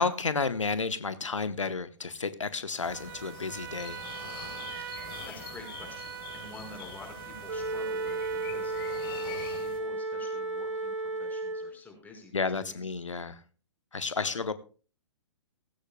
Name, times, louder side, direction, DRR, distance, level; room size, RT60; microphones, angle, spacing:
voice 1, 0.0-4.0 12.3-13.4 13.9-14.5, left 4 dB, 80° left, 13 dB, 1.0 m, -31 dB
sound 1, 2.8-9.8, left 7 dB, 50° left, 4.0 m, -45 dB
Trumpet, 2.9-9.3, right 12 dB, 45° right, 0.6 m, -43 dB
voice 2, 4.8-8.8 9.0-12.8 14.1-14.3, left 2 dB, 10° left, 3 dB, 5.0 m, -49 dB
Wind instrument woodwind instrument, 7.5-11.8, right 2 dB, 75° right, 2.1 m, -33 dB
17.5 x 16.5 x 2.2 m, 0.37 s
figure-of-eight pair, 120°, 16 cm